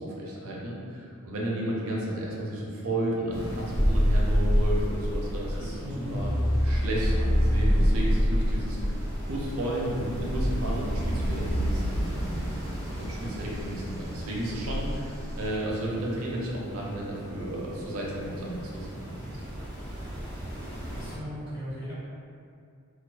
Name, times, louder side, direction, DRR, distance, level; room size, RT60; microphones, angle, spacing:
voice 1, 0.0-6.3 6.6-8.9 9.2-12.5 13.0-19.4, right 1 dB, 70° right, -4 dB, 0.5 m, -33 dB
sound 1, 3.3-21.1, equal, 10° left, 0.9 m, -40 dB
sound 2, 3.7-9.8, equal, 50° left, 0.5 m, -24 dB
voice 2, 5.5-6.6 20.9-21.9, equal, 75° left, -13 dB, 1.4 m, -37 dB
sound 3, 9.1-9.9 10.1-12.6 12.9-13.7 14.6-15.5, equal, 15° right, 0.3 m, -31 dB
2.4 x 2.3 x 2.3 m, 2.4 s
head